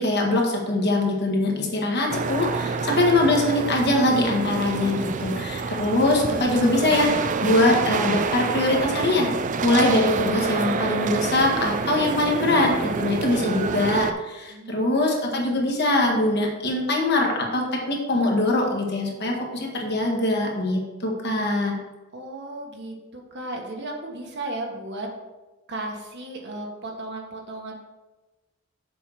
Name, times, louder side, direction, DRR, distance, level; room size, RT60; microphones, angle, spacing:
voice 1, 0.0-9.3 9.6-21.8, left 2 dB, 50° left, 0 dB, 1.6 m, -22 dB
sound 1, 2.1-14.1, right 4 dB, 35° right, 0.4 m, -27 dB
voice 2, 14.5-15.0 22.1-25.1 25.7-27.8, right 2 dB, 55° right, 1 dB, 1.4 m, -35 dB
7.1 x 4.7 x 5.9 m, 1.1 s
head